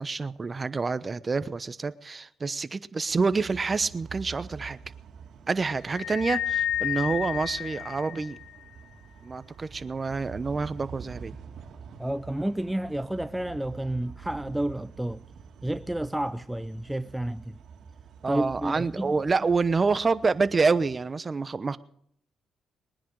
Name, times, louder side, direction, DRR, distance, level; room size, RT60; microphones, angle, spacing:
voice 1, 0.0-4.8 5.5-8.4 9.2-11.3 18.2-21.8, right 4 dB, 30° right, 0.9 m, -27 dB
sound 1, 3.1-21.0, right 6 dB, 70° right, 2.2 m, -46 dB
sound 2, 5.9-8.6, left 12 dB, 90° left, 0.9 m, -31 dB
voice 2, 12.0-15.2 15.6-17.6 18.3-19.1, right 1 dB, 5° right, 0.5 m, -30 dB
22.0 x 10.5 x 4.8 m
cardioid pair, 90°, 0 cm